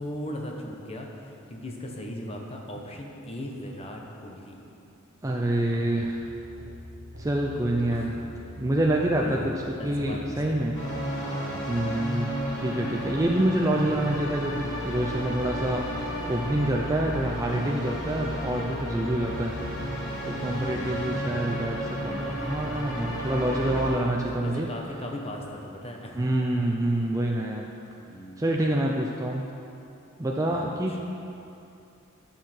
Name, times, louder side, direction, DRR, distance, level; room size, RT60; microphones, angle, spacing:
voice 1, 0.0-4.8 7.9-8.2 9.2-9.5 9.8-10.6 11.2-11.6 12.7-13.3 20.4-21.5 23.8-26.2 28.0-28.6 30.5-31.0, left 1 dB, 25° left, 0 dB, 1.0 m, -39 dB
voice 2, 5.2-6.3 7.2-8.2 8.6-10.8 11.7-19.6 20.2-24.7 26.1-27.7 28.4-29.4 30.2-31.0, right 1 dB, 15° right, -1 dB, 0.4 m, -27 dB
sound 1, 6.0-11.1 15.1-20.4, equal, 40° right, 1.1 m, -46 dB
sound 2, 10.7-23.9, equal, 60° left, 2.5 m, -33 dB
13.0 x 6.6 x 4.4 m, 2.7 s
head